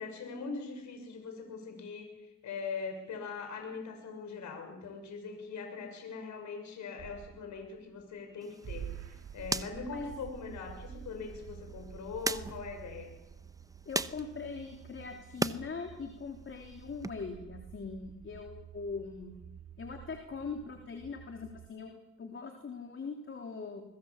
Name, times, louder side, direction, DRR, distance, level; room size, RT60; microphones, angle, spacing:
voice 1, 0.0-8.9 9.3-13.1, left 5 dB, 70° left, 4 dB, 6.6 m, -41 dB
sound 1, 7.0-8.4 8.6-21.7, right 8 dB, 55° right, 2.5 m, -49 dB
sound 2, 8.4-15.6 16.0-17.1, right 2 dB, 10° right, 1.0 m, -40 dB
voice 2, 13.8-19.3 19.8-23.8, left 4 dB, 40° left, 3 dB, 3.4 m, -41 dB
24.5 x 22.5 x 7.4 m, 0.97 s
cardioid pair, 90°, 30 cm